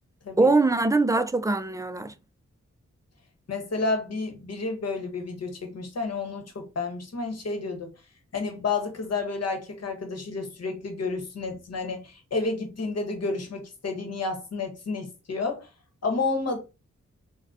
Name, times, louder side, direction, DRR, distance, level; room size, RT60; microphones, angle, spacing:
voice 1, 0.4-2.1, right 3 dB, 10° right, 0.3 m, -22 dB
voice 2, 3.5-7.9 8.3-15.7 16.0-16.6, left 3 dB, 60° left, 1.0 m, -30 dB
3.8 x 2.2 x 2.4 m
cardioid pair, 45°, 29 cm